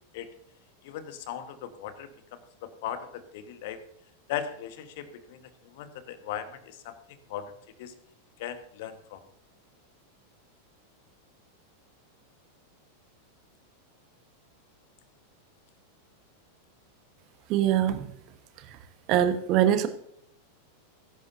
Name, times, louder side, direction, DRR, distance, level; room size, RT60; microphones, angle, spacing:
voice 1, 0.8-3.8 4.3-5.4 5.7-7.0 7.3-7.5 7.8-7.9 8.4-9.2, left 10 dB, 50° left, 10 dB, 1.4 m, -38 dB
voice 2, 17.5-18.0 19.1-19.9, right 11 dB, 40° right, 9 dB, 1.3 m, -23 dB
20.5 x 11.0 x 2.7 m, 0.71 s
figure-of-eight pair, 90°, 0 cm